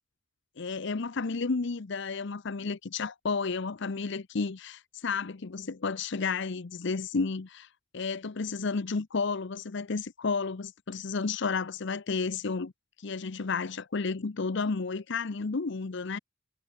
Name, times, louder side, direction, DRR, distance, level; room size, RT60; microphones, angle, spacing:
voice 1, 0.6-7.7 7.9-12.7 13.0-16.2, left 4 dB, 60° left, 0.7 m, -32 dB
head